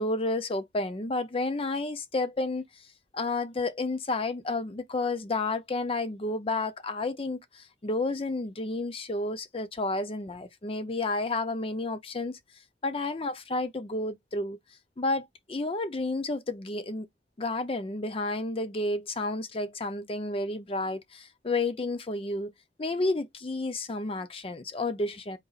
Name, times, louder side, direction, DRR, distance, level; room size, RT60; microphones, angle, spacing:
voice 1, 0.0-2.9 3.1-12.4 12.8-14.6 15.0-17.1 17.4-22.5 22.8-25.4, left 2 dB, 30° left, 0.5 m, -31 dB
4.0 x 2.8 x 4.0 m
head